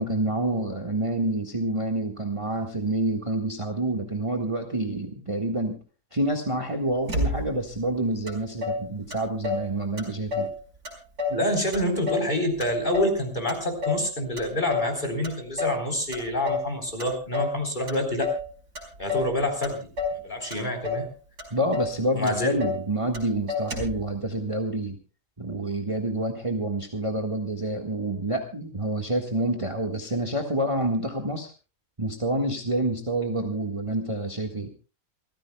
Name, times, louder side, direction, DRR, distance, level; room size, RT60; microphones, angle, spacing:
voice 1, 0.0-5.8 6.1-10.5 21.5-25.0 25.4-31.5 32.0-34.7, right 1 dB, 20° right, 4 dB, 1.7 m, -28 dB
Motor vehicle (road), 7.1-7.7 8.3-8.4 8.6-9.7 10.0-10.6 10.8-11.4 11.7-13.2 13.5-14.1 14.4-14.9 15.2-15.8 16.1-16.7 17.0-17.6 17.9-18.5 18.7-19.3 19.6-20.2 20.5-21.1 21.4-21.5 21.7-22.0 22.3-22.8 23.1-23.2 23.5-24.0, left 3 dB, 90° right, 5.5 m, -29 dB
voice 2, 11.3-18.3 19.0-21.1 22.2-22.5, left 1 dB, 30° left, 4 dB, 4.1 m, -27 dB
28.0 x 15.0 x 2.3 m, 0.33 s
omnidirectional pair, 1.7 m